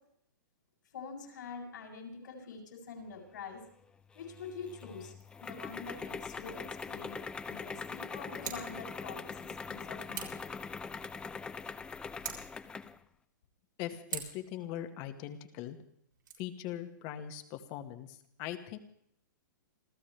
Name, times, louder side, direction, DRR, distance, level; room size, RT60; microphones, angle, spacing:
voice 1, 0.9-3.7 4.1-5.1 5.4-10.5, left 5 dB, 70° left, 0 dB, 7.7 m, -46 dB
sound 1, 4.2-13.0, left 5 dB, 10° left, 0.6 m, -42 dB
Scissors, 8.3-8.7 10.1-10.5 12.1-12.6 14.1-14.5 16.1-16.3, right 8 dB, 90° right, 6.2 m, -41 dB
voice 2, 13.8-15.8 16.4-18.8, left 11 dB, 35° left, 8 dB, 1.9 m, -41 dB
28.5 x 14.5 x 3.5 m, 0.70 s
hypercardioid pair, 145°, 11 cm